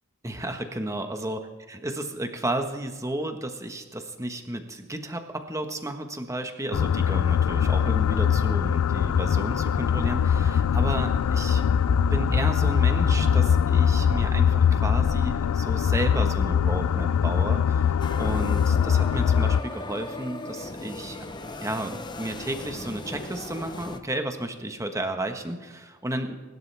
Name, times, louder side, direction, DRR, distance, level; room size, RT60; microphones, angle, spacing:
voice 1, 0.2-11.7 12.1-21.3 21.6-26.4, right 1 dB, 15° right, 6 dB, 1.4 m, -33 dB
sound 1, 6.7-19.6, left 8 dB, 85° left, 0.4 m, -22 dB
sound 2, 10.3-16.8, left 1 dB, 65° left, 2.8 m, -35 dB
sound 3, 18.0-24.0, left 2 dB, 20° left, 0.9 m, -38 dB
24.5 x 12.0 x 3.5 m, 1.3 s
head